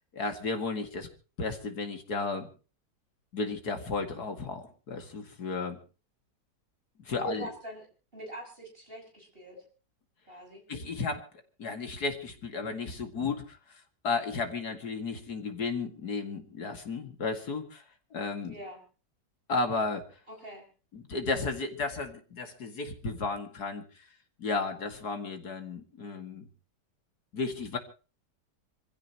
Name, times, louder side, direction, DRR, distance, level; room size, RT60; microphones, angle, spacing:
voice 1, 0.1-1.1 1.4-2.5 3.3-5.8 7.1-7.5 10.7-11.3 11.6-13.6 14.0-17.8 18.1-18.5 19.5-20.0 20.9-23.8 24.4-26.5 27.3-27.8, left 3 dB, 65° left, 6 dB, 2.6 m, -33 dB
voice 2, 7.1-7.8 8.1-9.6 10.3-10.6 18.4-18.8 20.3-20.7, equal, 30° right, 1 dB, 6.0 m, -44 dB
26.0 x 15.5 x 3.0 m, 0.36 s
omnidirectional pair, 1.9 m